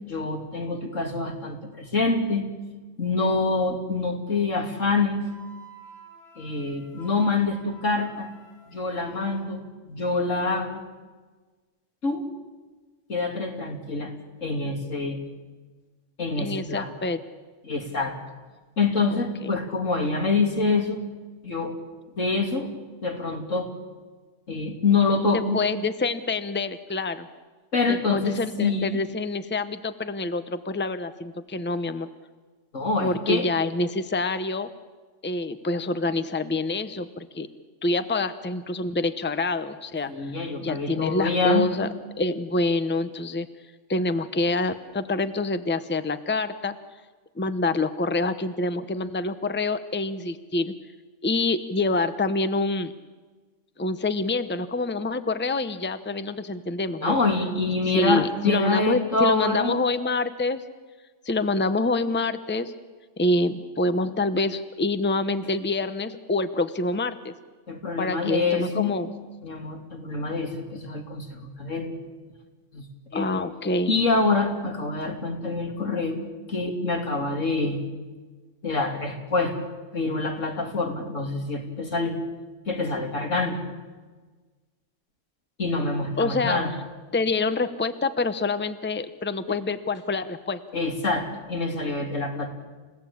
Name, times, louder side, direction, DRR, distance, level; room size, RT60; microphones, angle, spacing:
voice 1, 0.1-2.4 3.0-5.2 6.4-8.3 8.7-10.8 12.0-12.3 13.1-14.1 14.4-15.2 16.2-16.9 17.6-18.2 18.8-21.0 21.4-21.8 22.1-22.7 23.0-23.7 24.5-25.6 27.7-29.0 32.7-33.5 40.1-41.7 57.0-59.8 67.7-68.9 69.4-71.9 72.7-72.8 73.1-73.3 73.9-76.2 76.5-77.8 78.6-79.5 79.9-82.2 82.7-83.6 85.6-86.7 90.7-92.5, left 3 dB, 90° left, 3 dB, 3.2 m, -26 dB
Wind instrument woodwind instrument, 5.3-9.5, right 1 dB, 55° left, 7.0 m, -49 dB
voice 2, 16.4-17.2 19.1-19.5 25.3-27.3 27.9-32.1 33.0-34.7 35.2-37.5 37.8-40.1 40.6-41.9 42.2-43.5 43.9-46.7 47.4-50.7 51.2-52.9 53.8-57.2 57.8-60.6 61.2-62.7 63.2-67.3 68.0-69.1 73.1-73.9 86.2-86.6 87.1-90.6, left 2 dB, 10° left, 11 dB, 0.8 m, -26 dB
30.0 x 16.5 x 8.6 m, 1.4 s
omnidirectional pair, 1.3 m